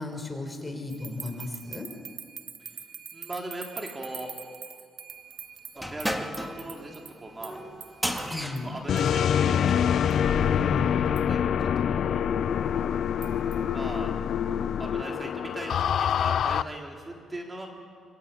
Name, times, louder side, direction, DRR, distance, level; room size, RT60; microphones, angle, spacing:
voice 1, 0.0-1.9 8.3-8.8 10.3-11.2, left 2 dB, 15° left, 5 dB, 4.8 m, -35 dB
sound 1, 0.9-8.6 9.0-9.1 10.1-10.2 11.2-11.3 13.2-13.7, right 7 dB, 55° right, 1.8 m, -44 dB
voice 2, 3.1-4.3 5.8-7.6 8.4-9.8 11.1-12.3 13.6-14.1 14.8-17.7, right 1 dB, 20° right, 1 dB, 3.8 m, -39 dB
sound 2, 5.8-9.9, equal, ahead, 2.5 m, -35 dB
sound 3, 8.9-16.6, left 8 dB, 65° left, 0.7 m, -25 dB
26.5 x 25.0 x 8.8 m, 2.2 s
cardioid pair, 90°, 0 cm